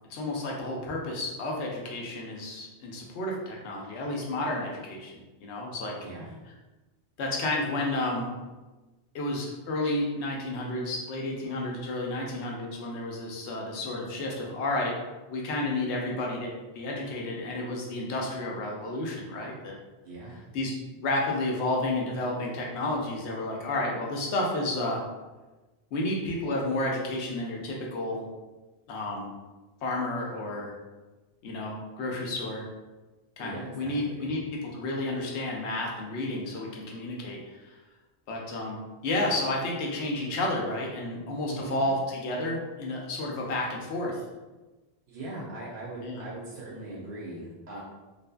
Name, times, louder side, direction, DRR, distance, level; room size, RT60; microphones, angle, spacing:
voice 1, 0.1-5.9 7.2-8.4 9.1-14.9 15.3-19.8 20.5-20.7 21.0-25.0 25.9-28.3 28.9-29.3 29.8-30.7 31.4-32.7 33.4-37.8 38.3-44.2 46.0-46.2, left 2 dB, 80° left, -1 dB, 0.9 m, -31 dB
voice 2, 6.0-6.3 20.0-20.4 33.4-34.3 41.5-41.8 45.1-47.8, right 2 dB, 75° right, -5 dB, 0.8 m, -40 dB
2.7 x 2.5 x 2.2 m, 1.2 s
omnidirectional pair, 1.1 m